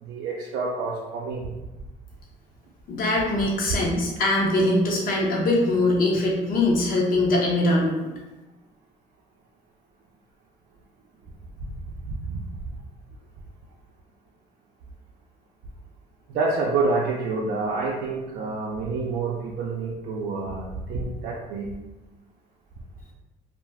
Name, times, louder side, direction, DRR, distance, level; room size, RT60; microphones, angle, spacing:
voice 1, 0.0-1.5 11.7-11.8 12.0-12.4 16.3-21.7, right 3 dB, 75° right, -3 dB, 0.5 m, -28 dB
voice 2, 2.9-8.1, left 2 dB, 55° left, -2 dB, 0.9 m, -22 dB
2.4 x 2.2 x 3.4 m, 1.1 s
cardioid pair, 110°, 17 cm